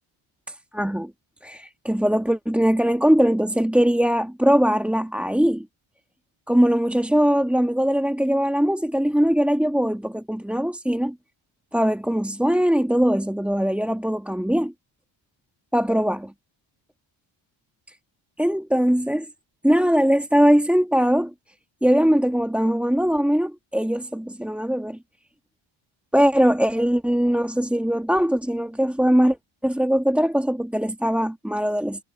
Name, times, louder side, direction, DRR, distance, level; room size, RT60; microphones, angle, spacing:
voice 1, 0.5-1.1 1.4-5.7 6.5-11.2 11.7-14.7 15.7-16.3 18.4-19.3 19.6-21.3 21.8-25.0 26.1-29.4 29.6-32.0, equal, 5° right, 1.7 m, -21 dB
cardioid pair, 115°, 48 cm